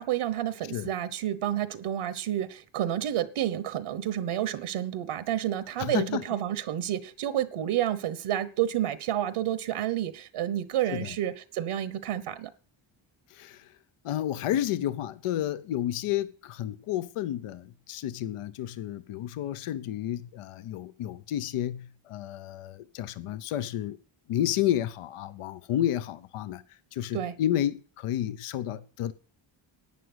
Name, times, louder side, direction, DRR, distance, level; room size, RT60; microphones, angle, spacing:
voice 1, 0.0-12.5 27.1-27.3, right 11 dB, 75° right, 1.2 m, -30 dB
voice 2, 5.8-6.2 10.9-11.2 13.3-13.8 14.0-24.0 24.3-29.1, left 12 dB, 85° left, 0.9 m, -31 dB
11.0 x 9.1 x 8.1 m
cardioid pair, 125°, 49 cm